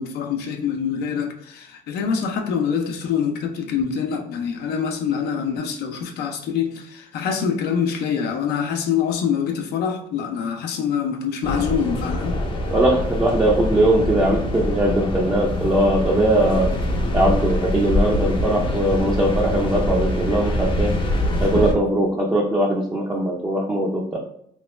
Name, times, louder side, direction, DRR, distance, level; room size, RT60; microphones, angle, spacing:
voice 1, 0.0-12.4, left 7 dB, 70° left, 3 dB, 0.6 m, -25 dB
sound 1, 11.4-21.7, left 1 dB, 30° left, 0.6 m, -24 dB
voice 2, 12.7-16.7 17.1-20.9 21.4-24.2, right 1 dB, 15° right, -2 dB, 0.5 m, -20 dB
3.0 x 2.2 x 3.1 m, 0.69 s
cardioid pair, 110°, 17 cm